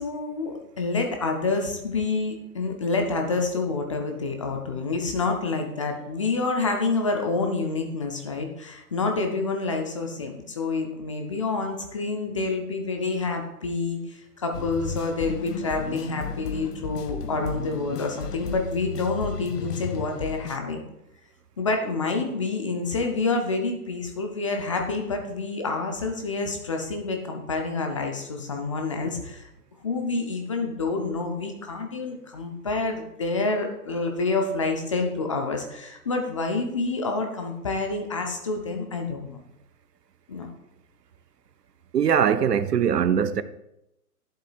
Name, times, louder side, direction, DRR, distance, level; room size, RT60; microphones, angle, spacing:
voice 1, 0.0-20.8 21.6-29.5 29.8-39.4 40.3-40.5, left 3 dB, 20° left, 0.5 m, -28 dB
sound 1, 14.5-20.6, left 6 dB, 85° left, 0.7 m, -34 dB
voice 2, 41.9-43.4, right 8 dB, 85° right, 0.7 m, -21 dB
11.5 x 7.5 x 2.4 m
hypercardioid pair, 140°, 47 cm